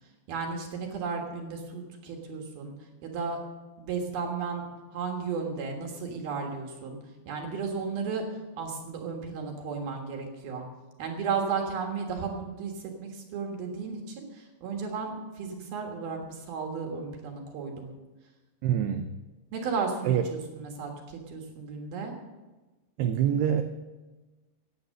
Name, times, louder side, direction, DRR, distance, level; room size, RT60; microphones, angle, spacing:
voice 1, 0.3-2.7 3.0-3.4 3.8-4.6 4.9-7.0 7.3-10.7 11.0-17.9 19.5-22.1, right 5 dB, 60° right, 2 dB, 2.9 m, -34 dB
voice 2, 18.6-19.1 20.1-20.2 23.0-23.6, right 9 dB, 90° right, 7 dB, 2.3 m, -25 dB
15.5 x 9.8 x 6.5 m, 1.2 s
omnidirectional pair, 5.7 m